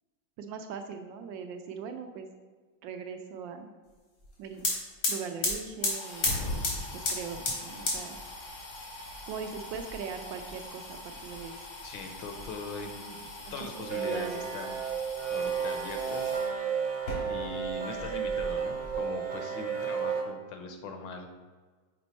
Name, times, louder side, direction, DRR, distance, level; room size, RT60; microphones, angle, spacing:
voice 1, 0.4-2.3 2.8-3.7 4.4-4.6 5.1-6.3 6.9-8.2 9.0-11.6 13.6-13.7 14.0-14.4, right 6 dB, 75° right, 6 dB, 1.2 m, -40 dB
sound 1, 4.2-4.3 4.5-16.5 16.9-17.7 18.0-19.0, left 2 dB, 85° left, 2.4 m, -36 dB
voice 2, 11.8-14.8 15.3-16.3 17.3-21.3, left 3 dB, 70° left, 5 dB, 1.4 m, -40 dB
sound 2, 13.7-20.2, right 7 dB, 55° right, 1.4 m, -32 dB
6.1 x 4.3 x 4.1 m, 1.4 s
omnidirectional pair, 2.2 m